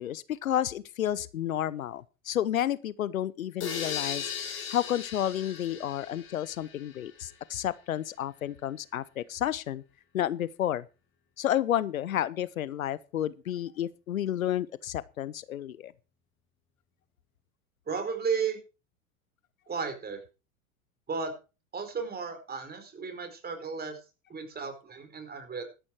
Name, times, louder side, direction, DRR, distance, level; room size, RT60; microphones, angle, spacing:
voice 1, 0.0-4.3 4.7-9.8 10.1-10.9 11.4-15.9, left 11 dB, 80° left, 0.8 m, -31 dB
sound 1, 3.6-7.3, left 7 dB, 30° left, 4.8 m, -38 dB
voice 2, 17.9-18.6 19.7-20.2 21.1-21.3 21.7-24.0 24.3-25.6, right 5 dB, 25° right, 4.4 m, -34 dB
12.5 x 11.5 x 4.6 m
hypercardioid pair, 90°, 41 cm